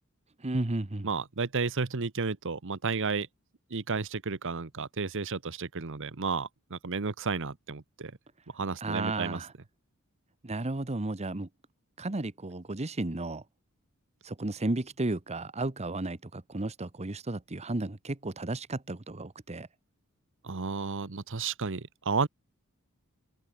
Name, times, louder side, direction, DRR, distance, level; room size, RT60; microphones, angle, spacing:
voice 1, 0.4-1.1 8.8-9.5 10.4-11.5 12.0-13.4 14.2-19.7, right 2 dB, 30° right, 1.1 m, -33 dB
voice 2, 1.0-3.3 3.7-8.1 8.5-9.4 20.4-22.3, right 4 dB, 60° right, 1.0 m, -32 dB
head